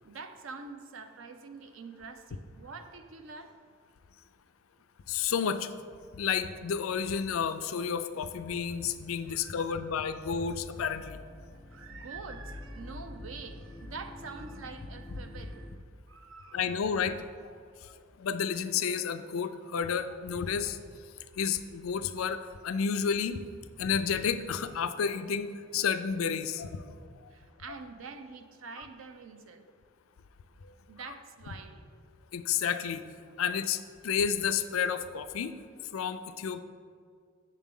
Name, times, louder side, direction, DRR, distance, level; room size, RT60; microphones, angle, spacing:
voice 1, 0.0-3.6 9.3-10.0 11.7-15.7 16.1-16.8 17.6-17.9 19.2-19.3 20.4-20.5 27.3-29.7 30.9-31.8, right 4 dB, 70° right, 8 dB, 0.6 m, -46 dB
voice 2, 5.1-5.7 6.2-11.2 16.5-17.2 18.2-20.8 21.4-23.4 23.8-26.9 32.3-33.0 33.4-35.5 35.9-36.6, left 7 dB, 85° left, 10 dB, 0.4 m, -31 dB
sound 1, 10.3-15.8, left 1 dB, 10° left, 0.3 m, -46 dB
8.2 x 6.6 x 3.7 m, 2.1 s
head